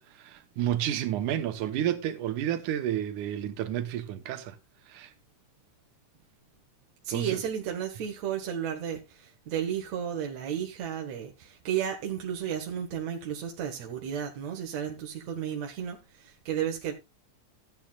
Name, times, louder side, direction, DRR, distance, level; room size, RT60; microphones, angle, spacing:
voice 1, 0.0-4.6 4.9-5.1 7.1-7.4, right 11 dB, 80° right, 2.5 m, -31 dB
voice 2, 7.0-16.9, right 9 dB, 65° right, 2.5 m, -33 dB
15.0 x 9.1 x 2.4 m
omnidirectional pair, 3.6 m